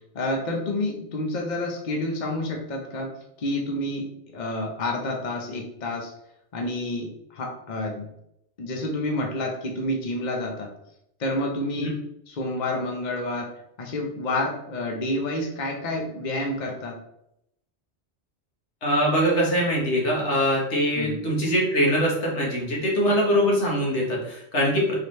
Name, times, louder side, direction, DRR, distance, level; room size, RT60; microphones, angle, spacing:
voice 1, 0.1-3.1 3.4-4.1 4.3-6.1 6.5-8.1 8.6-10.7 11.2-12.0 12.3-13.5 13.8-17.0 20.9-21.2, left 1 dB, 45° left, 1 dB, 0.9 m, -29 dB
voice 2, 18.8-24.9, equal, 85° left, -2 dB, 1.7 m, -23 dB
4.7 x 3.4 x 3.1 m, 0.77 s
omnidirectional pair, 1.1 m